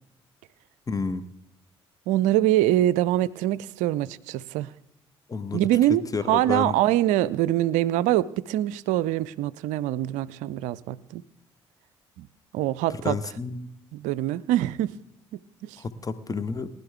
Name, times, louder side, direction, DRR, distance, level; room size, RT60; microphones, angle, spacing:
voice 1, 0.9-1.2 5.3-5.7 6.1-6.8 12.9-13.7 15.8-16.7, left 4 dB, 25° left, 13 dB, 1.0 m, -30 dB
voice 2, 2.1-4.7 5.5-6.0 6.3-11.2 12.2-12.3 12.5-13.2 13.9-14.9 15.3-15.8, right 14 dB, 65° right, 20 dB, 0.5 m, -24 dB
19.5 x 11.5 x 3.5 m, 0.78 s
figure-of-eight pair, 45°, 14 cm